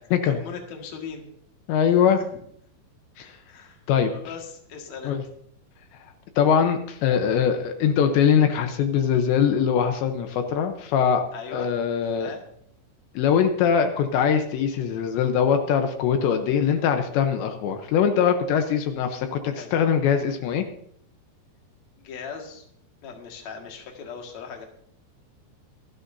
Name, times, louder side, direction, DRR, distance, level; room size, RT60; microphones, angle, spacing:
voice 1, 0.2-1.3 2.2-2.4 3.5-5.2 11.3-11.7 12.2-12.4 19.5-19.7 22.0-22.6 23.0-24.7, left 6 dB, 50° left, 2 dB, 2.6 m, -38 dB
voice 2, 1.7-2.2 3.2-3.4 3.9-4.1 5.0-5.2 6.4-11.3 11.5-12.3 13.2-20.6, left 7 dB, 80° left, 6 dB, 3.2 m, -22 dB
27.0 x 9.8 x 2.7 m, 0.68 s
omnidirectional pair, 5.3 m